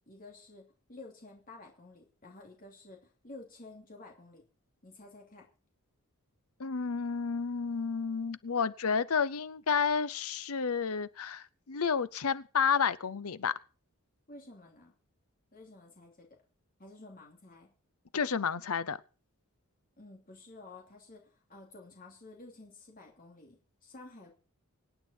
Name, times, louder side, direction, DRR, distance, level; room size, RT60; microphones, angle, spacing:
voice 1, 0.0-4.4 4.8-5.5 14.3-14.9 15.5-16.3 16.8-17.7 20.0-24.4, left 2 dB, 40° left, 2.8 m, -52 dB
voice 2, 6.6-13.5 18.1-19.0, left 6 dB, 75° left, 0.7 m, -31 dB
25.5 x 8.8 x 4.4 m
head